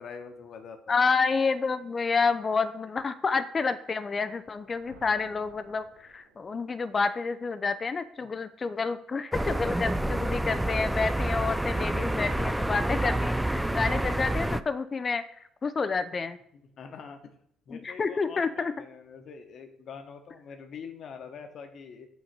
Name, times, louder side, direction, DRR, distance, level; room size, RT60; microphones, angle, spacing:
voice 1, 0.0-1.0 8.2-8.3 16.5-17.3 17.7-22.1, left 6 dB, 55° left, 6 dB, 1.3 m, -44 dB
voice 2, 0.9-15.2 15.6-16.4 17.7-18.7, left 4 dB, 35° left, 12 dB, 0.6 m, -29 dB
sound 1, 4.4-7.0, right 2 dB, 80° right, 1.6 m, -56 dB
sound 2, 9.3-14.6, right 1 dB, 5° right, 0.5 m, -28 dB
8.1 x 3.9 x 5.3 m, 0.69 s
hypercardioid pair, 50°, 0 cm